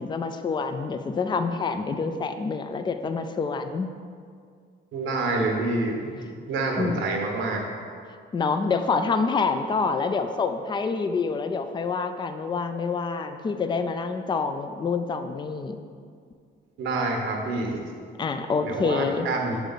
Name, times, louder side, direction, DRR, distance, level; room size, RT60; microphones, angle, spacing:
voice 1, 0.0-3.9 6.8-7.0 8.3-15.8 18.2-19.3, left 4 dB, 25° left, 8 dB, 0.4 m, -27 dB
voice 2, 4.9-6.1 6.5-7.6 16.8-17.8 18.6-19.6, right 2 dB, 80° right, 1 dB, 1.1 m, -27 dB
6.4 x 4.9 x 4.0 m, 2.2 s
cardioid pair, 90°, 20 cm